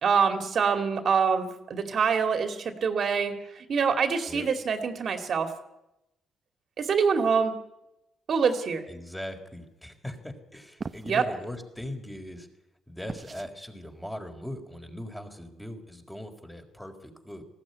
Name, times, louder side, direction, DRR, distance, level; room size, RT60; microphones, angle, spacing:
voice 1, 0.0-5.5 6.8-7.5 8.3-8.8 11.1-11.2, right 6 dB, 55° right, 6 dB, 2.4 m, -25 dB
voice 2, 8.9-12.5 12.9-17.4, left 1 dB, 5° left, 3 dB, 4.0 m, -40 dB
footsteps child parquet, 10.8-11.2 13.1-13.5, right 4 dB, 35° right, 1.0 m, -38 dB
19.0 x 15.5 x 9.7 m, 0.91 s
cardioid pair, 90°, 0 cm